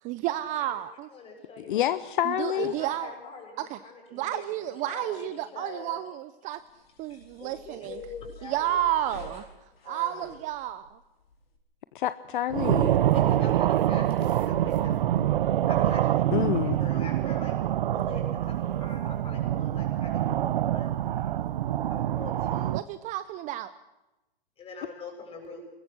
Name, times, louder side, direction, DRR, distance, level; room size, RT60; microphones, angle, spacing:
voice 1, 0.0-1.1 2.2-3.1 3.6-3.8 4.1-6.6 7.0-8.0 8.4-9.5 9.8-11.0 22.7-23.7, right 13 dB, 25° right, 13 dB, 0.8 m, -31 dB
voice 2, 1.1-2.0 2.5-5.9 7.1-8.8 9.1-9.3 9.8-10.3 13.1-15.3 15.7-17.6 17.9-21.0 21.9-22.8 24.6-25.6, left 3 dB, 20° left, 3 dB, 7.4 m, -44 dB
voice 3, 1.7-2.7 11.9-13.0 16.3-16.8, left 12 dB, 60° left, 14 dB, 0.9 m, -27 dB
sound 1, 6.6-11.6, left 3 dB, 85° left, 5.4 m, -50 dB
sound 2, 12.5-22.8, right 12 dB, 60° right, 1.0 m, -25 dB
23.0 x 21.5 x 6.3 m, 1.0 s
hypercardioid pair, 135°, 29 cm